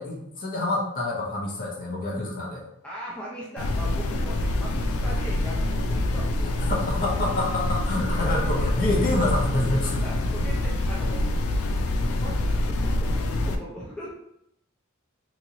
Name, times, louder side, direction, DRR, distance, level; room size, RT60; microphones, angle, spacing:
voice 1, 0.0-2.6 6.7-10.0, left 2 dB, 40° left, -2 dB, 0.8 m, -27 dB
voice 2, 2.8-6.6 8.2-8.9 10.0-11.3 12.2-14.1, equal, 5° left, -5 dB, 0.5 m, -40 dB
sound 1, 3.6-13.6, left 1 dB, 80° left, 0.4 m, -26 dB
3.0 x 2.8 x 2.6 m, 0.79 s
head